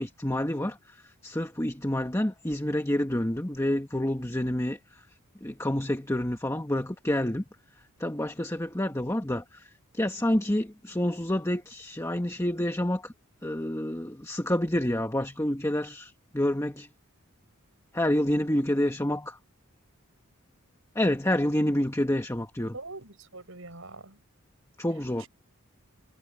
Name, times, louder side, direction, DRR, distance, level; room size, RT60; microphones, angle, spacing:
voice 1, 0.0-5.1 5.4-7.4 8.0-13.1 13.4-16.9 17.9-19.4 20.9-22.7 24.8-25.3, left 1 dB, 15° left, 1.4 m, -28 dB
voice 2, 22.7-24.2 25.2-25.3, right 3 dB, 70° right, 7.6 m, -43 dB
head